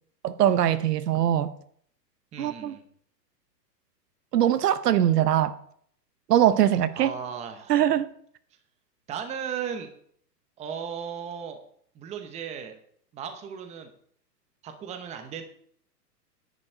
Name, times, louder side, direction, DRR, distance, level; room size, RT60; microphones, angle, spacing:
voice 1, 0.2-1.5 2.4-2.7 4.3-5.5 6.3-7.1 7.7-8.1, right 11 dB, 70° right, 13 dB, 0.9 m, -22 dB
voice 2, 2.3-2.8 7.0-7.7 9.1-9.9 10.6-11.6 11.9-12.7 13.1-13.9 14.6-15.4, right 7 dB, 15° right, 6 dB, 0.8 m, -36 dB
10.0 x 7.6 x 4.5 m, 0.62 s
hypercardioid pair, 140°, 49 cm